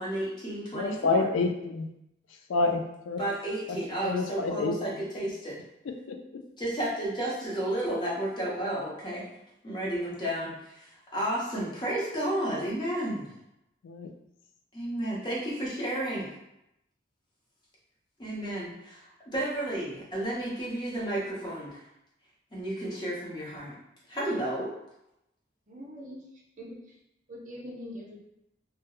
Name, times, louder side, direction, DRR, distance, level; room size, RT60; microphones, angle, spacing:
voice 1, 0.0-1.3 3.2-5.5 6.6-9.2 9.6-13.3 14.7-16.3 18.2-21.8 22.5-23.7 24.1-24.7, right 1 dB, 25° left, -6 dB, 0.7 m, -32 dB
voice 2, 0.7-1.9 2.5-3.2 3.7-4.8 6.1-6.2 13.8-14.1, left 3 dB, 90° left, 5 dB, 0.3 m, -28 dB
voice 3, 25.7-26.2 26.6-26.8 27.3-28.2, equal, 40° right, -2 dB, 0.5 m, -42 dB
2.3 x 2.0 x 2.9 m, 0.85 s
head